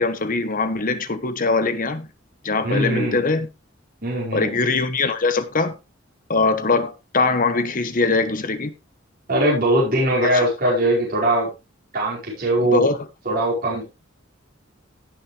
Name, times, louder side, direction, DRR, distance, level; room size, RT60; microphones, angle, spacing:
voice 1, 0.0-2.1 2.4-3.5 4.3-5.7 6.3-8.7 10.2-10.5 12.6-13.0, left 3 dB, 45° left, 1.1 m, -22 dB
voice 2, 2.6-3.2 4.0-4.5 9.3-11.5 11.9-12.9 13.2-13.8, right 1 dB, 45° right, 5.1 m, -21 dB
17.0 x 6.6 x 3.3 m
head